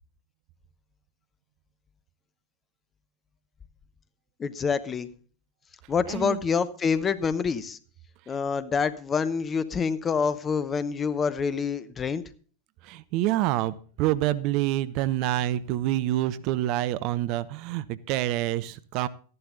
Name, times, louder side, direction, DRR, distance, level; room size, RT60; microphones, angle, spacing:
voice 1, 4.4-5.1 5.9-7.8 8.3-12.2, left 6 dB, 20° left, 14 dB, 0.9 m, -27 dB
voice 2, 6.1-6.4 12.8-19.1, right 14 dB, 40° right, 16 dB, 0.6 m, -27 dB
13.5 x 11.0 x 3.9 m, 0.41 s
figure-of-eight pair, 90°, 0 cm